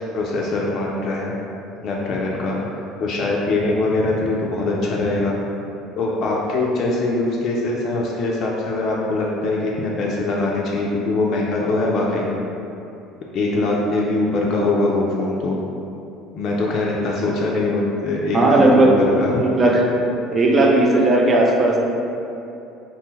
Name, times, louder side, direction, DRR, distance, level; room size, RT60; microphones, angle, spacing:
voice 1, 0.1-1.3 1.8-5.3 6.0-12.4 13.3-15.6 16.3-18.9 19.2-19.4, left 2 dB, 55° left, -3 dB, 0.3 m, -22 dB
voice 2, 18.3-19.9 20.3-21.8, right 2 dB, 35° right, -1 dB, 0.5 m, -16 dB
2.7 x 2.1 x 3.1 m, 2.7 s
hypercardioid pair, 70°, 0 cm